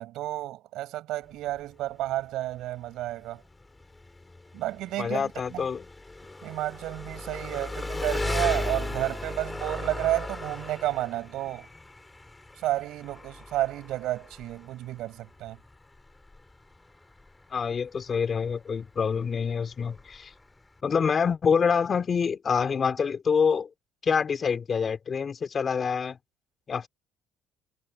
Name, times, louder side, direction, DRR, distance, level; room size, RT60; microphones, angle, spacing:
voice 1, 0.0-3.4 4.5-5.6 6.4-11.7 12.6-15.6, right 15 dB, 75° right, 7.8 m, -31 dB
Engine, 1.2-20.8, left 2 dB, 15° left, 7.0 m, -38 dB
voice 2, 5.0-5.8 17.5-20.3 20.8-23.7 24.0-26.2 26.7-26.9, left 6 dB, 40° left, 3.4 m, -26 dB
cardioid pair, 90°, 0 cm